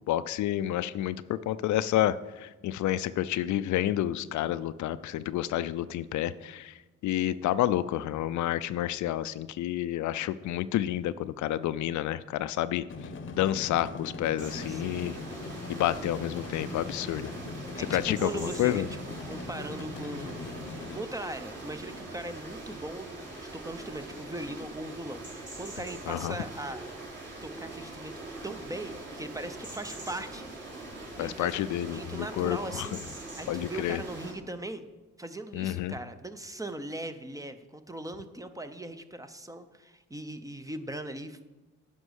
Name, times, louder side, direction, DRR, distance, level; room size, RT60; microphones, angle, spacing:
voice 1, 0.1-12.8 13.3-15.2 15.7-17.3 17.8-18.9 26.1-26.3 31.2-32.9 33.5-34.0 35.5-35.9, left 13 dB, 70° left, 15 dB, 0.5 m, -29 dB
sound 1, 12.9-21.0, left 3 dB, 40° left, 0.8 m, -41 dB
sound 2, 14.4-34.3, right 2 dB, 40° right, 3.4 m, -43 dB
voice 2, 14.5-15.0 17.8-20.5 20.7-26.9 27.4-28.1 28.4-30.5 31.2-33.0 33.4-34.9 35.2-41.4, right 1 dB, 10° right, 10 dB, 0.7 m, -39 dB
9.9 x 5.3 x 6.4 m, 1.1 s
cardioid pair, 90°, 30 cm